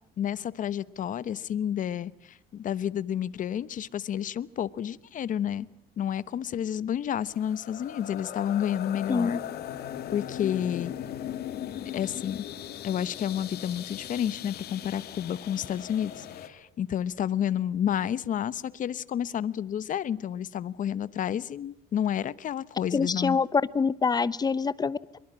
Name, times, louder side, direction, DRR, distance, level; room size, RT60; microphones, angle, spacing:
voice 1, 0.2-5.7 6.0-9.4 10.1-10.9 11.9-12.5 12.8-23.4, left 9 dB, 50° left, 18 dB, 1.0 m, -30 dB
sound 1, 7.2-16.5, left 10 dB, 70° left, 2.3 m, -39 dB
voice 2, 9.1-9.4 22.9-25.2, left 5 dB, 25° left, 18 dB, 0.9 m, -26 dB
24.0 x 22.5 x 8.8 m, 0.74 s
cardioid pair, 110°, 17 cm